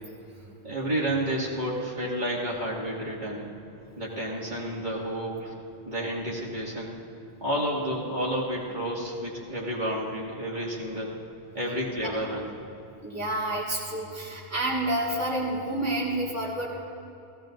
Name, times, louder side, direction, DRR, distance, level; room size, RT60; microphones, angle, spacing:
voice 1, 0.6-3.5 4.0-5.5 5.9-6.9 7.4-11.1 11.5-12.5, equal, 45° right, -6 dB, 2.4 m, -30 dB
voice 2, 13.0-16.7, right 1 dB, 15° right, -5 dB, 1.9 m, -29 dB
17.5 x 16.0 x 2.6 m, 2.7 s
omnidirectional pair, 1.1 m